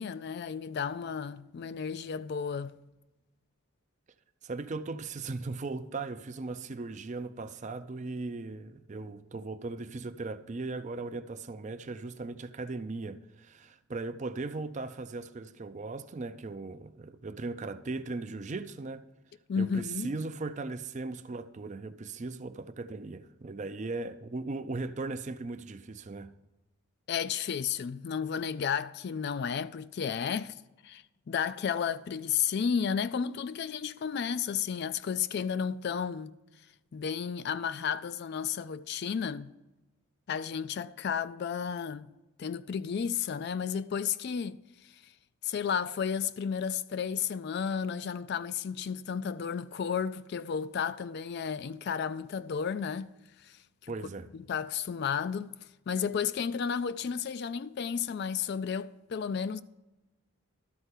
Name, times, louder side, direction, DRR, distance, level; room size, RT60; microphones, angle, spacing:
voice 1, 0.0-2.8 19.5-20.1 27.1-30.6 30.8-36.3 36.9-39.5 40.3-42.1 42.4-44.6 45.4-53.1 53.4-53.6 53.8-53.9 54.3-55.5 55.9-59.6, left 7 dB, 50° left, 0.3 m, -32 dB
voice 2, 4.4-19.0 19.6-26.3 53.9-54.3, right 3 dB, 35° right, 0.4 m, -38 dB
12.5 x 4.5 x 8.2 m
head